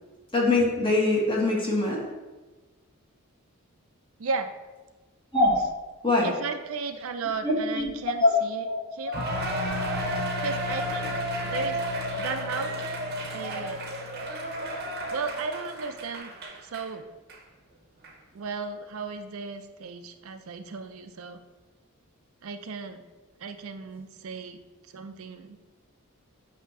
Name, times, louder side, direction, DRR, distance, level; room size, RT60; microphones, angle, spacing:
voice 1, 0.3-2.0 5.3-5.5 6.0-6.3 7.4-7.9 8.2-8.3 8.6-9.1 13.4-13.5, left 2 dB, 25° left, -3 dB, 1.5 m, -23 dB
voice 2, 4.2-4.5 6.2-8.7 8.9-9.2 10.4-11.2 11.4-11.8 12.1-12.8 13.3-13.8 15.1-16.3 16.6-17.1 18.3-21.4 22.4-23.0 23.4-24.6 24.9-25.6, right 4 dB, 70° right, 8 dB, 0.5 m, -35 dB
sound 1, 9.1-15.5, left 5 dB, 75° left, 0.8 m, -38 dB
Cheering, 9.1-16.9 17.3-17.4 18.0-18.1, right 1 dB, 45° right, 0.8 m, -33 dB
8.1 x 2.8 x 6.0 m, 1.2 s
head